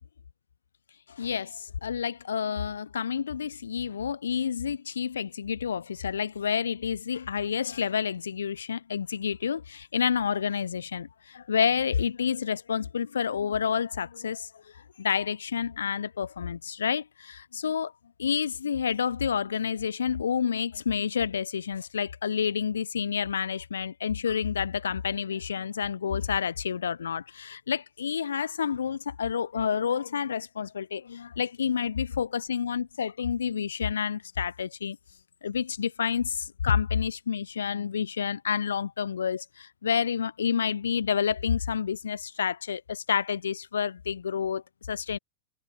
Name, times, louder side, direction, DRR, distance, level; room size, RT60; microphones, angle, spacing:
voice 1, 1.1-17.9 18.2-35.0 35.4-45.2, left 7 dB, 70° left, 0.6 m, -29 dB
figure-of-eight pair, 90°, 0 cm